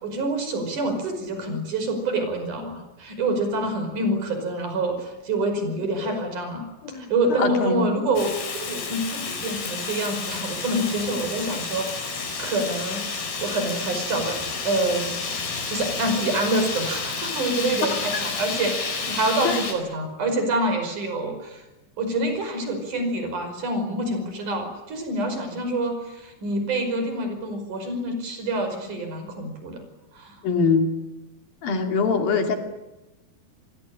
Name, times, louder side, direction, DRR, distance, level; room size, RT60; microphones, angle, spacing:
voice 1, 0.0-6.6 7.1-14.4 14.6-15.2 15.7-21.6 22.0-29.8 30.1-30.4, right 2 dB, 55° right, 6 dB, 6.6 m, -27 dB
voice 2, 7.4-7.9 17.8-18.2 19.4-19.6 30.4-30.9 31.6-32.6, left 4 dB, 70° left, 5 dB, 4.4 m, -23 dB
Fire, 8.2-19.7, left 4 dB, 85° left, 6.7 m, -30 dB
28.0 x 19.5 x 10.0 m, 1.0 s
omnidirectional pair, 4.4 m